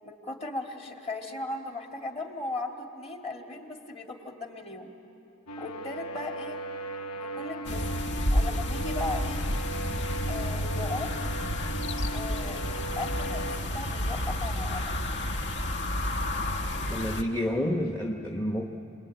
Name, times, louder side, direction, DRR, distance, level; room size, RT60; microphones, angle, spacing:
voice 1, 0.0-4.9 5.6-6.6 7.1-9.5 10.2-11.1 12.1-14.9, left 2 dB, 30° left, 2 dB, 2.2 m, -37 dB
sound 1, 5.5-13.6, right 1 dB, 80° left, 0.9 m, -38 dB
sound 2, 7.6-17.2, left 1 dB, 55° left, 1.2 m, -30 dB
voice 2, 16.9-18.7, left 1 dB, 15° left, 1 dB, 1.0 m, -29 dB
28.0 x 21.5 x 9.2 m, 2.8 s
head